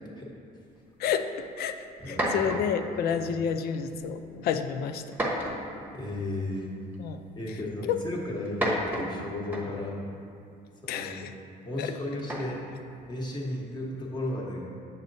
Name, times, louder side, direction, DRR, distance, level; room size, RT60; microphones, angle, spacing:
voice 1, 1.0-5.2 7.0-7.2 7.9-8.0 10.9-11.3 11.8-11.9, left 7 dB, 65° left, 9 dB, 0.4 m, -30 dB
sound 1, 1.4-1.5 2.0-2.8 3.7-4.1 5.1-5.8 6.9-7.0 8.4-9.9 12.2-12.7, equal, 10° right, 1.0 m, -31 dB
voice 2, 2.0-2.5 3.1-3.3 5.9-6.7 7.4-10.0 10.8-11.3 11.6-12.6 13.1-14.7, left 1 dB, 25° left, -2 dB, 1.2 m, -34 dB
8.5 x 6.5 x 2.7 m, 2.6 s
cardioid pair, 110°, 17 cm